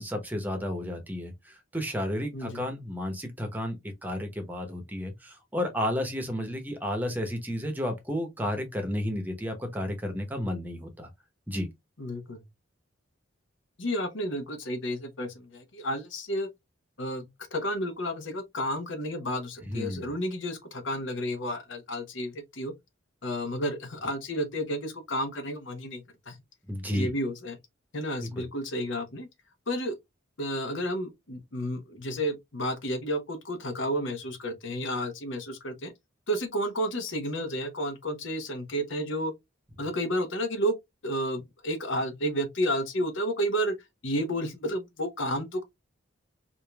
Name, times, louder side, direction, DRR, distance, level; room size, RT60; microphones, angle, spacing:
voice 1, 0.0-3.8 4.0-11.1 11.5-11.7 19.6-20.1 26.7-27.1 28.2-28.5, left 1 dB, 10° right, 0.8 m, -32 dB
voice 2, 2.3-2.6 12.0-12.4 13.8-16.5 17.0-22.7 23.2-26.4 26.9-27.6 27.9-29.3 29.7-29.9 30.4-35.9 36.3-39.3 39.8-40.7 41.0-43.7 44.0-45.6, equal, 70° left, 1.0 m, -31 dB
5.0 x 2.6 x 2.3 m
head